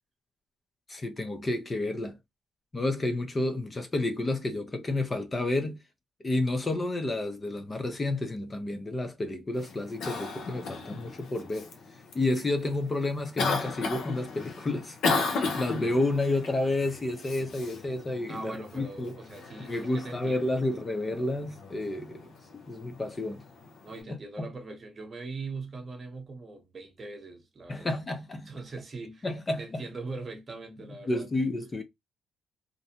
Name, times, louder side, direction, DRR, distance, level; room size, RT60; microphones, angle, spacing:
voice 1, 0.9-2.2 2.7-5.8 6.2-11.7 12.1-19.1 19.7-23.4 24.1-24.5 27.7-28.5 29.2-29.8 31.1-31.8, left 2 dB, 30° left, 0.5 m, -30 dB
Cough, 9.5-24.0, left 4 dB, 75° left, 0.7 m, -36 dB
voice 2, 18.2-20.6 23.8-28.0 28.5-29.3 29.6-31.3, right 3 dB, 40° right, 0.8 m, -41 dB
2.5 x 2.1 x 2.7 m
cardioid pair, 90°, 0 cm